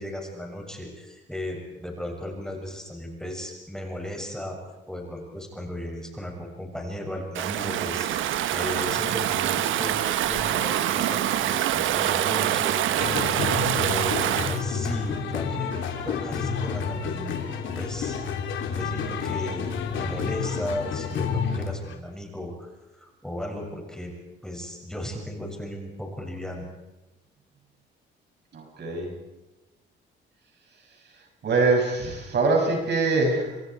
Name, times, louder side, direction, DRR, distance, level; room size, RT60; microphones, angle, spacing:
voice 1, 0.0-4.6 4.9-13.5 13.8-14.1 14.5-17.4 17.8-18.1 18.7-22.7 23.0-24.1 24.4-26.7, left 1 dB, 5° left, 0 dB, 7.0 m, -35 dB
Stream / Ocean, 7.3-14.6, right 12 dB, 80° right, 1.1 m, -25 dB
sound 1, 13.0-21.9, left 6 dB, 75° left, 3.5 m, -30 dB
voice 2, 28.5-29.1 31.4-33.6, right 3 dB, 60° right, 2 dB, 7.4 m, -23 dB
29.0 x 26.5 x 4.8 m, 1.0 s
cardioid pair, 90°, 20 cm